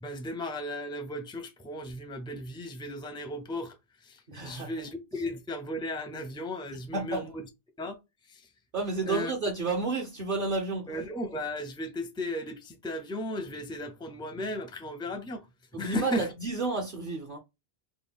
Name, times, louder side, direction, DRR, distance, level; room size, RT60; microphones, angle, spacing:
voice 1, 0.0-7.5 7.8-8.0 8.3-8.5 9.1-9.3 10.9-16.3, left 1 dB, 5° left, 0.4 m, -35 dB
voice 2, 4.3-4.7 6.9-7.2 8.7-10.9 15.7-17.4, right 3 dB, 55° right, 0.9 m, -31 dB
3.7 x 2.2 x 3.5 m
omnidirectional pair, 1.0 m